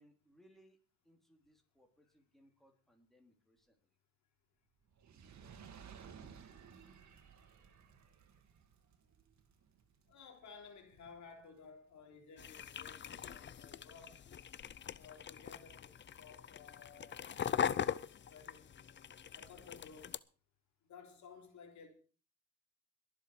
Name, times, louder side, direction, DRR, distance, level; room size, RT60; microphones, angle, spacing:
voice 1, 0.0-3.9, equal, ahead, 3.6 m, -68 dB
Fire, 4.9-11.3 12.0-12.1, right 7 dB, 65° right, 2.2 m, -57 dB
voice 2, 10.1-14.2 15.0-18.7 19.3-20.2 20.9-21.9, left 5 dB, 70° left, 3.4 m, -56 dB
sound 1, 12.4-20.2, left 8 dB, 40° left, 0.6 m, -41 dB
22.0 x 7.5 x 4.9 m
cardioid pair, 90°, 30 cm